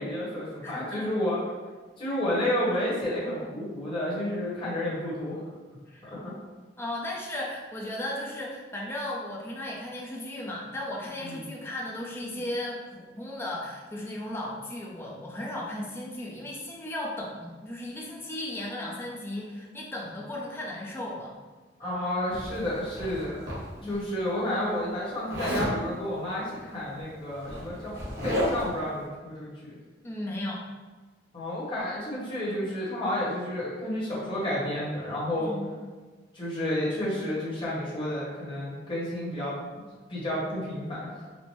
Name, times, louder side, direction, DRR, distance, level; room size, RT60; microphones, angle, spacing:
voice 1, 0.0-1.4 2.0-5.4 6.0-6.3 11.2-11.4 21.8-23.4 23.8-27.9 28.2-29.8 31.3-35.5 36.3-39.6 40.1-41.2, left 1 dB, 30° left, -8 dB, 1.1 m, -31 dB
voice 2, 0.6-1.0 5.9-6.1 6.8-21.3 23.8-24.1 30.0-30.6 35.4-35.7, left 1 dB, 15° left, -4 dB, 0.5 m, -36 dB
Zipper (clothing), 22.3-24.0 25.3-25.8 26.9-27.0 27.3-28.8, equal, 60° right, 1.2 m, -32 dB
4.3 x 2.0 x 3.1 m, 1.3 s
head